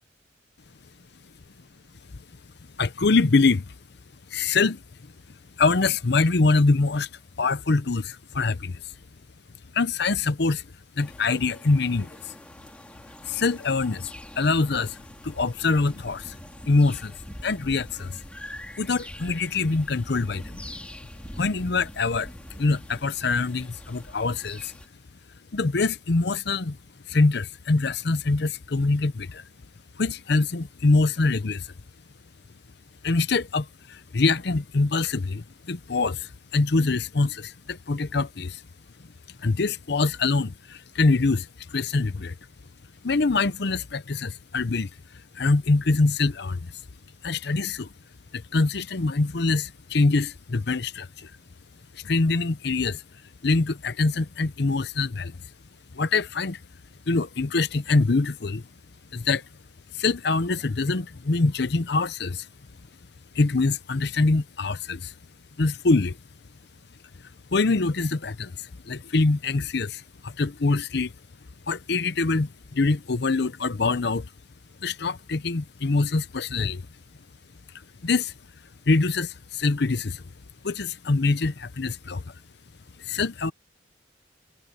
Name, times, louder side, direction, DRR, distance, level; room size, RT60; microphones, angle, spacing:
voice 1, 2.8-3.7 4.3-4.8 5.6-7.1 7.4-8.8 9.7-10.6 11.0-12.3 13.3-15.0 15.2-16.4 16.7-17.2 17.4-18.2 18.8-20.6 21.4-22.3 22.6-24.7 25.5-26.8 27.1-29.4 30.0-31.7 33.0-38.6 39.4-42.3 43.0-44.9 45.3-46.7 47.2-47.9 48.3-51.3 51.9-53.0 53.4-55.4 55.9-56.6 57.1-58.7 59.1-59.4 59.9-62.5 63.3-65.1 65.6-66.2 67.5-71.1 71.7-74.3 74.8-76.8 78.0-78.3 78.9-80.2 80.6-82.3 83.0-83.5, left 3 dB, 55° left, 0.7 m, -24 dB
Ronda - Plaza del gigante, 11.0-24.9, equal, 5° left, 2.8 m, -44 dB
head